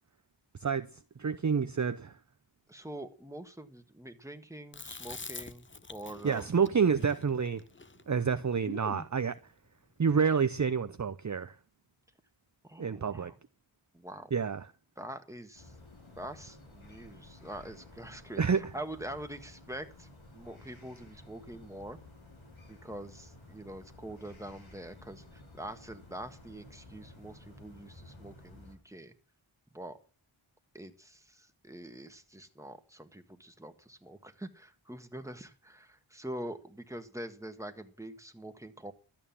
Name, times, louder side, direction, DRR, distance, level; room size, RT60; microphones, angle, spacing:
voice 1, 1.2-2.1 6.2-7.6 8.1-9.4 10.0-11.5 12.8-13.3 14.3-14.7 18.4-18.6, right 6 dB, 35° right, 0.6 m, -28 dB
voice 2, 2.7-6.7 12.6-13.4 13.9-14.3 15.0-15.7 16.2-22.0 22.7-29.1 29.7-30.0 30.7-38.9, right 1 dB, 5° right, 1.6 m, -45 dB
Chewing mastication, 4.7-9.1, left 4 dB, 25° left, 0.7 m, -46 dB
sound 1, 15.5-28.8, left 2 dB, 70° left, 4.1 m, -54 dB
12.5 x 8.8 x 7.2 m
wide cardioid pair, 60°, 49 cm